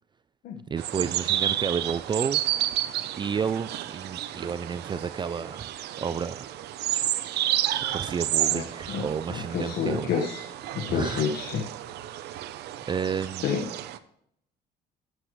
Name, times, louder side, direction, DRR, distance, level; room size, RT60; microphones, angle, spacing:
voice 1, 0.7-2.4 3.2-6.7 7.9-10.1 10.9-11.2 12.9-13.4, right 6 dB, 25° right, 0.4 m, -31 dB
sound 1, 0.8-14.0, right 12 dB, 80° right, 0.8 m, -31 dB
voice 2, 8.9-10.4 10.7-11.6 13.4-13.6, left 6 dB, 70° left, 1.5 m, -29 dB
12.0 x 11.5 x 3.2 m
cardioid pair, 110°, 17 cm